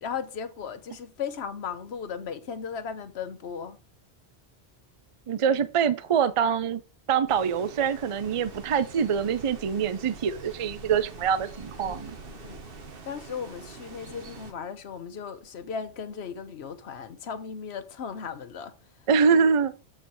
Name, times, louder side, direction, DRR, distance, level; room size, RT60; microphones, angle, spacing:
voice 1, 0.0-3.8 11.8-12.6 13.0-18.7, left 6 dB, 70° left, 1.1 m, -36 dB
voice 2, 5.3-6.8 7.1-12.1 19.1-19.7, right 6 dB, 40° right, 0.5 m, -24 dB
sound 1, 7.3-14.5, right 4 dB, 55° right, 1.3 m, -44 dB
7.7 x 4.4 x 4.6 m
omnidirectional pair, 1.1 m